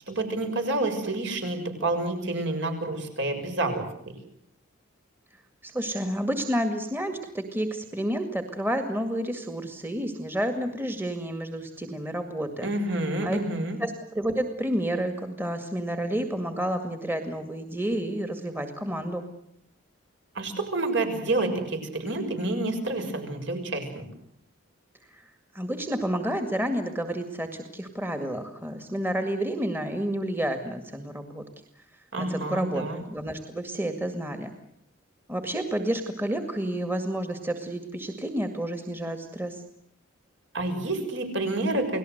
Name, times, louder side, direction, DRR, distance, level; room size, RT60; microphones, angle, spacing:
voice 1, 0.1-3.8 12.6-13.8 20.3-24.0 32.1-33.0 40.5-42.0, right 2 dB, 60° right, 5 dB, 6.8 m, -28 dB
voice 2, 5.6-12.7 13.2-13.4 13.8-19.2 25.1-25.2 25.5-31.4 32.2-34.5 35.3-39.6, right 1 dB, 10° right, 6 dB, 2.0 m, -30 dB
30.0 x 19.0 x 8.0 m, 0.74 s
head